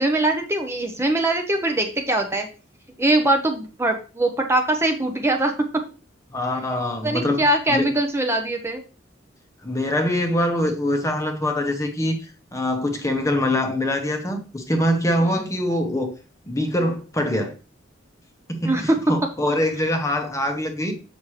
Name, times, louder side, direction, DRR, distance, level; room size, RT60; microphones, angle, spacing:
voice 1, 0.0-2.5 3.0-5.5 7.0-8.8 18.6-19.0, right 1 dB, 15° right, 0.7 m, -22 dB
voice 2, 6.3-7.9 9.6-16.1 16.5-17.6 18.5-20.9, left 1 dB, 15° left, 0.9 m, -24 dB
7.3 x 6.0 x 3.2 m
head